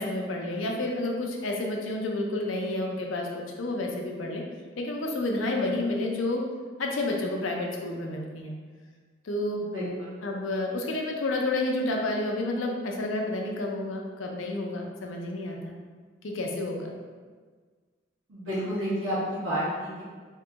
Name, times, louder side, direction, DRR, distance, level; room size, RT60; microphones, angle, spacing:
voice 1, 0.0-4.4 4.8-6.4 6.8-8.5 9.2-9.6 10.2-15.7 16.2-16.9, left 2 dB, 90° left, 1 dB, 0.5 m, -30 dB
voice 2, 9.7-10.1 18.3-20.0, equal, 85° right, -10 dB, 1.2 m, -30 dB
2.9 x 2.9 x 3.5 m, 1.5 s
head